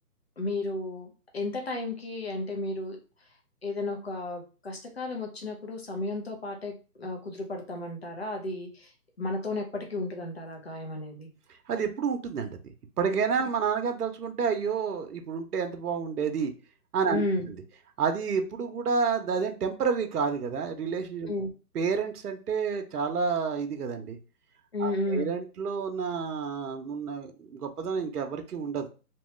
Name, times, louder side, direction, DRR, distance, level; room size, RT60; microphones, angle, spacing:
voice 1, 0.4-3.0 3.6-8.9 9.2-11.3 17.1-17.5 21.3-21.5 24.7-25.3, left 2 dB, 45° left, 2 dB, 0.6 m, -33 dB
voice 2, 11.7-16.5 16.9-17.2 18.0-21.3 21.7-24.2 24.8-28.9, right 5 dB, 75° right, 6 dB, 0.7 m, -29 dB
2.9 x 2.2 x 3.1 m, 0.34 s
hypercardioid pair, 180°, 46 cm